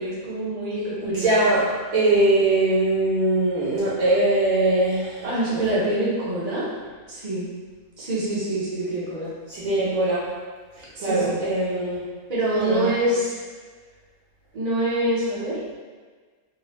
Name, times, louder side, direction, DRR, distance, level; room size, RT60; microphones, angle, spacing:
voice 1, 0.0-1.4 5.2-6.7 7.1-7.5 8.0-9.3 9.7-9.8 10.9-11.4 12.3-13.4 14.5-15.6, right 1 dB, 35° right, -8 dB, 0.9 m, -25 dB
voice 2, 1.0-5.8 9.5-10.3 11.0-12.0 12.6-12.9, right 2 dB, 80° right, -9 dB, 1.3 m, -22 dB
3.1 x 2.9 x 3.0 m, 1.5 s
omnidirectional pair, 1.5 m